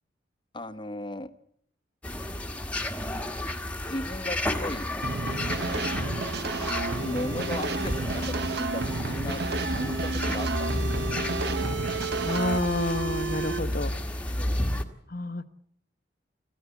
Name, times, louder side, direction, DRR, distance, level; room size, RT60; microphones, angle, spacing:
voice 1, 0.5-1.3 3.9-4.9 7.0-11.3 14.4-14.7, left 1 dB, 25° left, 12 dB, 1.0 m, -37 dB
sound 1, 2.0-14.8, left 1 dB, 5° left, 1.4 m, -32 dB
sound 2, 5.0-12.6, right 3 dB, 55° right, 1.0 m, -32 dB
sound 3, 5.1-9.0 9.5-13.6, right 4 dB, 80° right, 1.2 m, -36 dB
voice 2, 12.2-13.9 15.1-15.5, left 2 dB, 50° left, 13 dB, 1.0 m, -29 dB
26.5 x 15.5 x 8.2 m, 0.67 s
head